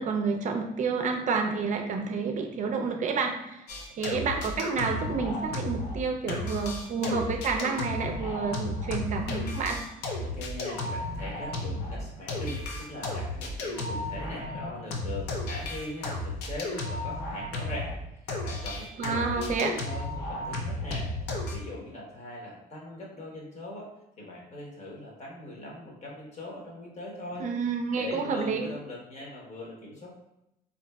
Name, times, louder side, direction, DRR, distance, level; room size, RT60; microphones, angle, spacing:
voice 1, 0.0-3.7 4.0-9.8 19.0-19.7 27.4-28.7, right 4 dB, 50° right, 4 dB, 0.4 m, -29 dB
sound 1, 3.7-6.0 6.3-18.0 18.3-21.6, left 2 dB, 85° left, 0.6 m, -34 dB
voice 2, 10.2-17.9 18.2-21.1 21.5-23.9 24.2-27.5 27.9-30.2, left 1 dB, 40° left, -2 dB, 1.0 m, -40 dB
3.8 x 2.6 x 2.2 m, 0.87 s
cardioid pair, 110°, 17 cm